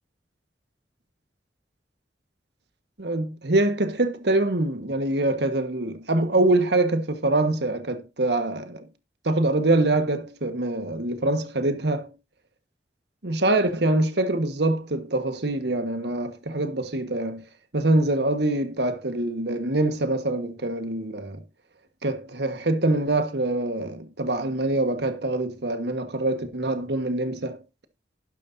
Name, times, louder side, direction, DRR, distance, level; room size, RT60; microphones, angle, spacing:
voice 1, 3.0-8.9 9.2-12.1 13.2-17.5 17.7-21.4 22.0-27.6, right 2 dB, 65° right, 1.6 m, -24 dB
11.5 x 11.0 x 2.8 m
head